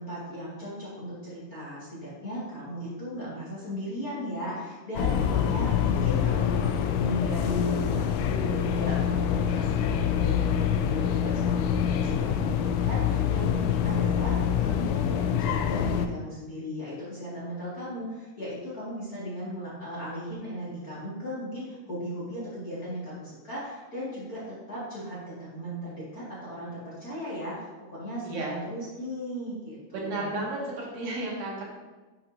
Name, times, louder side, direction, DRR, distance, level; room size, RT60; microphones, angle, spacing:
voice 1, 0.0-30.4, equal, 30° left, -9 dB, 1.9 m, -36 dB
sound 1, 5.0-16.1, left 8 dB, 80° left, 1.9 m, -26 dB
voice 2, 29.9-31.6, right 2 dB, 75° right, -5 dB, 3.5 m, -33 dB
10.0 x 5.6 x 2.7 m, 1.3 s
omnidirectional pair, 3.9 m